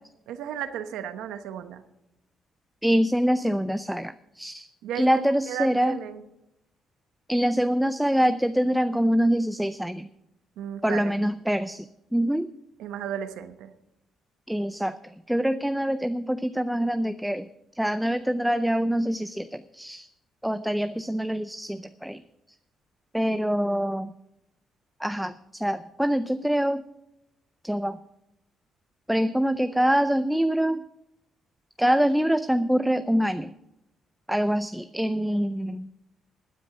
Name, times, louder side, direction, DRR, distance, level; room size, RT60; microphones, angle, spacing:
voice 1, 0.3-1.8 4.8-5.1 5.5-6.2 10.6-11.3 12.8-13.7, right 9 dB, 90° right, 10 dB, 1.0 m, -34 dB
voice 2, 2.8-4.7 4.9-6.0 7.3-10.1 10.8-11.8 12.1-12.5 14.5-17.5 17.8-20.1 20.4-22.2 23.1-24.1 25.0-26.8 27.6-28.0 29.1-30.8 31.8-33.5 34.3-35.9, equal, 5° right, 12 dB, 0.5 m, -25 dB
12.0 x 9.6 x 5.9 m, 0.85 s
cardioid pair, 90°, 0 cm